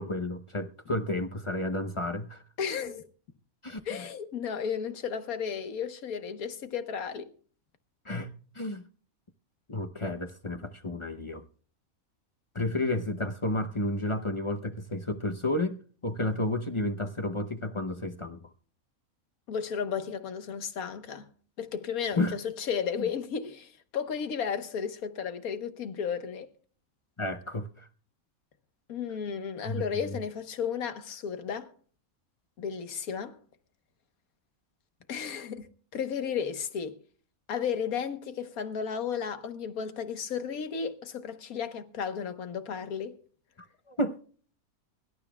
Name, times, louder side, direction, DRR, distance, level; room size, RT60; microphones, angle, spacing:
voice 1, 0.0-2.4 3.6-3.8 8.0-8.8 9.7-11.4 12.5-18.5 22.1-22.4 27.2-27.9 29.6-29.8 43.9-44.2, left 1 dB, 30° left, 0.5 m, -31 dB
voice 2, 2.6-3.1 3.8-7.3 19.5-21.3 21.6-26.5 28.9-31.7 32.6-33.4 35.1-37.0 37.5-43.2, left 7 dB, 90° left, 1.6 m, -34 dB
23.5 x 12.0 x 2.3 m
omnidirectional pair, 1.5 m